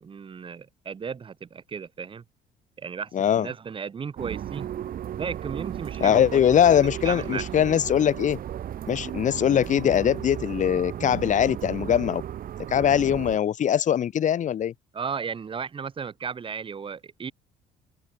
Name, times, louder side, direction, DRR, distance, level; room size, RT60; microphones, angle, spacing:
voice 1, 0.0-2.2 2.8-4.7 5.2-6.5 7.0-7.6 14.9-17.3, right 6 dB, 30° right, 1.2 m, -35 dB
voice 2, 3.1-3.5 6.0-8.4 8.9-12.2 12.7-14.7, left 9 dB, 45° left, 1.4 m, -22 dB
sound 1, 4.2-13.4, right 11 dB, 60° right, 5.1 m, -35 dB
cardioid pair, 110°, 17 cm